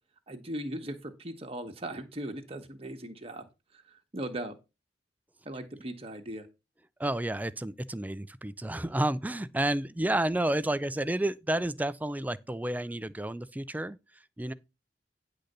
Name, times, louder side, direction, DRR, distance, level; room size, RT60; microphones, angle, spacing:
voice 1, 0.3-3.5 3.7-4.5 5.4-6.5, right 1 dB, 35° right, 1.1 m, -38 dB
voice 2, 7.0-14.0 14.4-14.5, right 1 dB, 10° right, 0.4 m, -30 dB
10.0 x 3.9 x 6.6 m
head